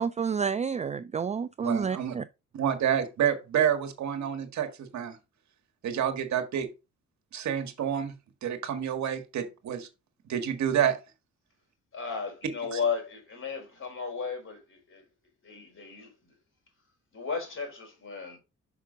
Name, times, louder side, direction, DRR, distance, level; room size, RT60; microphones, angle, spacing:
voice 1, 0.0-2.2, right 6 dB, 25° right, 0.3 m, -29 dB
voice 2, 1.6-2.1 2.5-5.2 5.8-6.7 7.3-8.1 8.4-9.9 10.3-11.0 12.7-12.8, right 9 dB, 65° right, 1.7 m, -28 dB
voice 3, 11.9-15.0 15.4-16.3 17.1-18.4, left 5 dB, 45° left, 4.0 m, -35 dB
5.9 x 5.9 x 3.8 m
cardioid pair, 90°, 30 cm